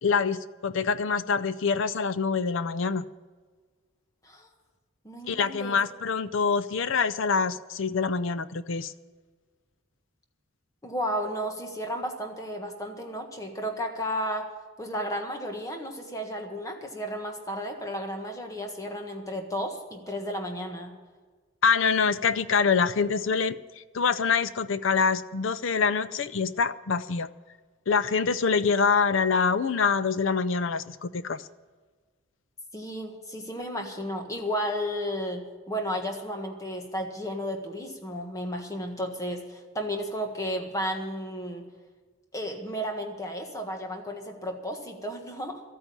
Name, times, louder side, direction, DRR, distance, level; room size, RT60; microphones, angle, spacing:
voice 1, 0.0-3.1 5.3-8.9 21.6-23.6 23.9-27.3 27.9-31.4, left 5 dB, 60° left, 15 dB, 0.5 m, -25 dB
voice 2, 5.0-5.8 10.8-14.4 14.8-20.9 32.7-41.6 42.3-45.6, equal, 15° left, 3 dB, 1.5 m, -33 dB
13.0 x 9.0 x 8.7 m, 1.4 s
head